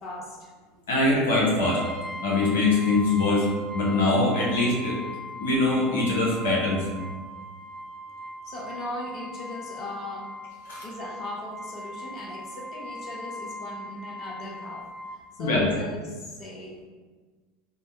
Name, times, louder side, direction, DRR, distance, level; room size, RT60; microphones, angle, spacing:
voice 1, 0.0-0.5 8.4-10.4 10.8-16.8, left 1 dB, 40° left, -3 dB, 0.8 m, -38 dB
voice 2, 0.9-1.8 2.2-3.5 3.7-5.0 5.4-6.8 10.7-10.8 15.4-15.6, left 2 dB, 70° left, -4 dB, 0.8 m, -23 dB
Brass instrument, 1.6-15.2, equal, 5° left, 0.8 m, -39 dB
4.8 x 2.2 x 2.7 m, 1.4 s
figure-of-eight pair, 80°, 0 cm